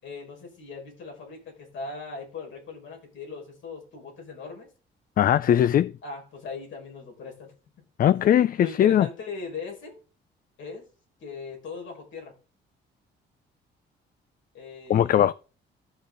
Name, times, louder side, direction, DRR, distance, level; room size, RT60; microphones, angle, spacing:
voice 1, 0.0-4.7 6.0-7.5 8.6-10.0 10.6-10.9 11.2-12.3 14.5-15.3, left 4 dB, 75° left, 5.2 m, -39 dB
voice 2, 5.2-5.9 8.0-9.1 14.9-15.3, left 10 dB, 45° left, 0.4 m, -20 dB
13.5 x 6.4 x 3.9 m
cardioid pair, 90°, 20 cm